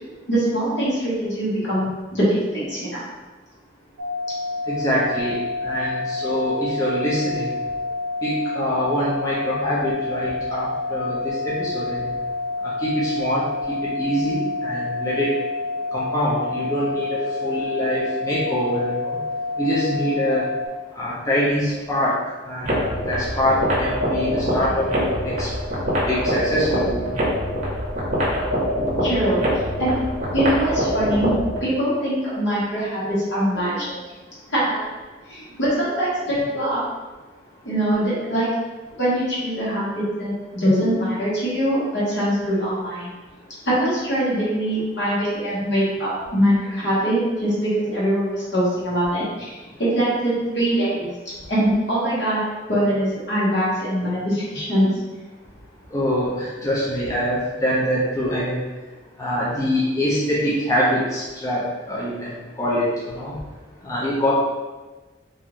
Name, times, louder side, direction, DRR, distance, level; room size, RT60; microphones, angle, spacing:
voice 1, 0.3-3.0 29.0-29.4 29.8-30.0 30.3-31.3 31.6-34.0 34.5-34.8 35.3-36.8 37.6-38.5 39.0-43.1 43.6-49.5 49.8-51.1 51.5-52.4 52.7-54.9, right 1 dB, 75° left, -8 dB, 1.3 m, -22 dB
sound 1, 4.0-20.7, left 3 dB, 90° right, 0.4 m, -28 dB
voice 2, 4.7-7.5 8.2-12.1 12.6-15.3 15.9-19.2 19.6-20.5 21.0-22.2 22.5-25.5 26.1-27.1 55.9-58.6 59.2-63.3 63.8-64.3, equal, 20° left, -7 dB, 0.5 m, -24 dB
sound 2, 22.6-31.6, equal, 40° right, 0.7 m, -24 dB
2.6 x 2.5 x 3.0 m, 1.2 s
head